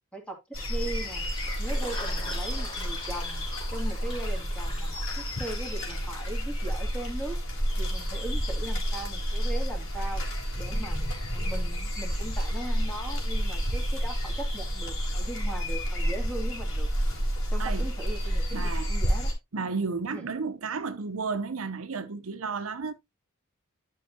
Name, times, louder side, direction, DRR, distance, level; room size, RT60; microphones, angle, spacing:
sound 1, 0.5-19.3, equal, 65° left, 3.9 m, -30 dB
voice 1, 0.7-1.3 1.6-3.4 3.7-7.4 7.8-10.2 10.6-11.0 11.3-16.9 17.5-19.3 20.1-20.2, right 1 dB, 5° left, 2.5 m, -39 dB
sound 2, 1.2-7.4 7.8-11.9 12.2-13.1, left 2 dB, 25° left, 3.6 m, -45 dB
voice 2, 18.5-18.9 19.5-22.9, right 4 dB, 70° right, 0.7 m, -32 dB
12.0 x 5.5 x 2.8 m
head